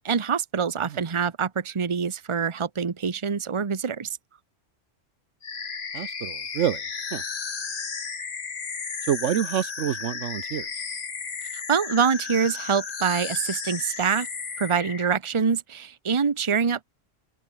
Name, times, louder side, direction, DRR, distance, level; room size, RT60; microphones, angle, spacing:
voice 1, 0.0-4.2 11.5-14.3 14.6-16.8, right 6 dB, 25° right, 0.9 m, -25 dB
sound 1, 5.4-15.1, left 5 dB, 45° left, 1.4 m, -34 dB
voice 2, 5.9-6.8 7.1-7.2 9.1-10.7, right 10 dB, 75° right, 1.1 m, -27 dB
omnidirectional pair, 1.3 m